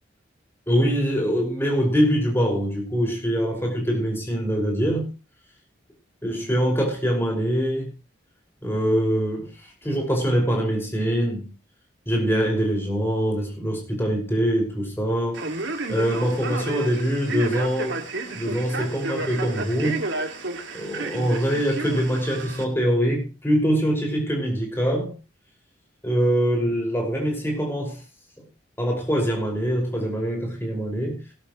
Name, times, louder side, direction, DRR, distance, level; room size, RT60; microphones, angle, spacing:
voice 1, 0.7-5.1 6.2-7.9 8.6-9.5 9.8-11.5 12.1-15.4 15.9-18.0 18.3-20.0 20.7-25.1 26.0-28.0 28.8-31.2, equal, 15° left, -1 dB, 5.5 m, -23 dB
Male speech man speaking, 15.3-22.6, right 3 dB, 80° right, 2.3 m, -31 dB
18.0 x 12.0 x 3.1 m, 0.31 s
head